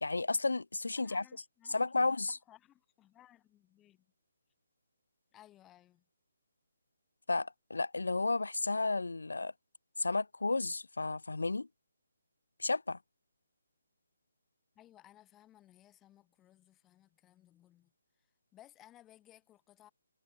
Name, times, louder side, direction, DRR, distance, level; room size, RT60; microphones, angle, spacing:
voice 1, 0.0-1.2 1.7-2.4 7.3-9.5 10.0-11.7 12.6-13.0, left 3 dB, 75° left, 0.5 m, -32 dB
voice 2, 1.0-4.1 5.3-6.0 14.8-18.3 18.5-19.9, left 13 dB, 15° left, 2.2 m, -61 dB
figure-of-eight pair, 145°, 0 cm